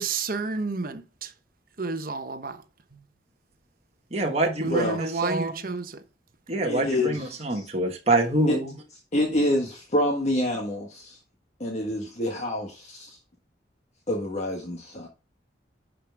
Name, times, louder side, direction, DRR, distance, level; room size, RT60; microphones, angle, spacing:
voice 1, 0.0-1.3 1.8-2.6 2.9-3.0 4.6-6.0, right 4 dB, 50° right, 1.0 m, -30 dB
voice 2, 4.1-5.5 6.5-8.7, right 2 dB, 35° right, 1.4 m, -25 dB
voice 3, 4.7-5.0 6.6-7.2 7.5-7.6 8.5-8.6 9.1-11.2 11.6-13.2 14.1-15.1, left 1 dB, 40° left, 1.5 m, -27 dB
11.0 x 5.0 x 3.5 m
head